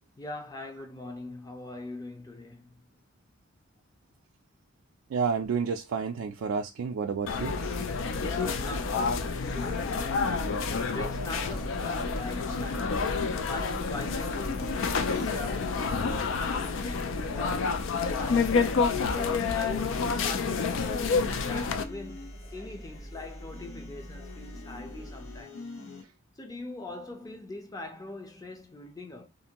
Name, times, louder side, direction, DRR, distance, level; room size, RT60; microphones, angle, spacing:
voice 1, 0.2-2.7 8.2-17.7 18.2-25.6 26.4-29.3, left 2 dB, 20° left, 0.5 m, -42 dB
voice 2, 5.1-7.6, right 5 dB, 75° right, 0.3 m, -30 dB
sound 1, 7.3-21.8, left 5 dB, 65° left, 0.4 m, -29 dB
sound 2, 7.4-25.4, equal, 50° left, 0.9 m, -42 dB
sound 3, 18.0-26.0, left 3 dB, 90° left, 1.1 m, -46 dB
2.5 x 2.5 x 2.9 m
head